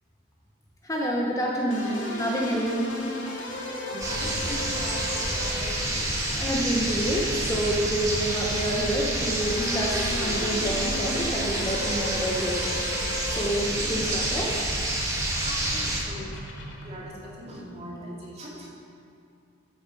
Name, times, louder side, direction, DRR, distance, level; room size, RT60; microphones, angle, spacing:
voice 1, 0.8-2.9 6.3-12.8 13.3-14.7, right 1 dB, 15° left, -3 dB, 1.1 m, -28 dB
sound 1, 1.7-17.1, left 1 dB, 75° left, 2.2 m, -36 dB
voice 2, 3.8-6.1 15.4-16.4 16.8-18.7, equal, 35° right, -5 dB, 2.7 m, -40 dB
sound 2, 4.0-16.0, right 1 dB, 15° right, 1.7 m, -28 dB
13.0 x 7.8 x 5.4 m, 2.5 s
head